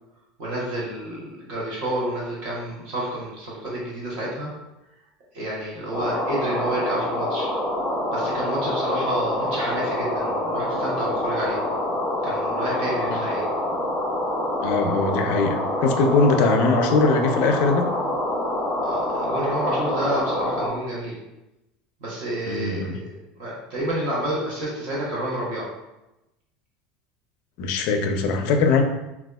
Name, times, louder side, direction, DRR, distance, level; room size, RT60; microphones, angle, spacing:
voice 1, 0.4-4.5 5.3-7.5 8.1-11.6 12.2-13.5 18.8-21.2 22.0-23.1 23.4-25.7, right 1 dB, 55° right, -5 dB, 0.9 m, -29 dB
sound 1, 5.9-20.7, left 1 dB, 5° left, 0.6 m, -26 dB
voice 2, 14.6-17.9 22.5-22.9 27.6-28.8, left 4 dB, 55° left, 5 dB, 0.4 m, -21 dB
4.1 x 2.3 x 2.3 m, 0.95 s
cardioid pair, 165°, 3 cm